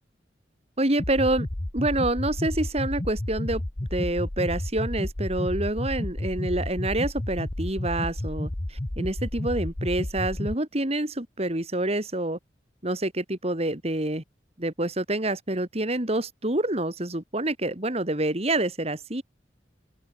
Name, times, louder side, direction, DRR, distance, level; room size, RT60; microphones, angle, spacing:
voice 1, 0.8-1.5 1.7-3.6 3.9-12.4 12.8-14.2 14.6-19.2, right 1 dB, 35° right, 2.6 m, -27 dB
sound 1, 1.0-10.5, left 1 dB, 30° left, 1.0 m, -31 dB
open air
head